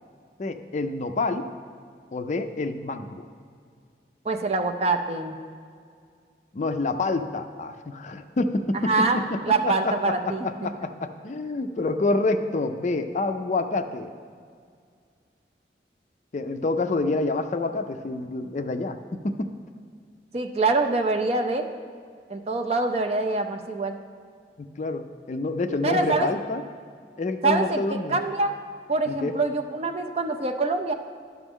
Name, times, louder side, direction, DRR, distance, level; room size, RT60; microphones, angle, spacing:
voice 1, 0.4-1.5 2.1-3.3 6.5-14.1 16.3-19.5 24.6-26.6 27.2-28.2 29.1-29.3, left 2 dB, 40° left, 8 dB, 0.4 m, -28 dB
voice 2, 4.3-5.4 8.7-10.7 20.3-21.7 22.3-24.0 25.8-26.3 27.4-28.5 28.9-30.9, right 3 dB, 35° right, 5 dB, 0.5 m, -25 dB
11.0 x 6.0 x 3.6 m, 2.2 s
head